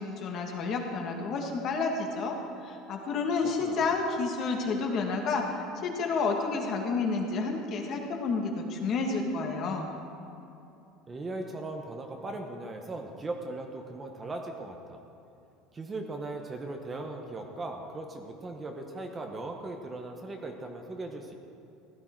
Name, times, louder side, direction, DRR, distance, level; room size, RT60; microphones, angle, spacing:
voice 1, 0.0-2.4 2.6-5.5 5.8-9.9, left 4 dB, 40° left, 2 dB, 1.7 m, -30 dB
voice 2, 3.4-4.0 11.1-15.0 15.7-21.3, right 2 dB, 15° right, 3 dB, 0.9 m, -38 dB
16.0 x 12.0 x 4.5 m, 2.8 s
cardioid pair, 155°, 0 cm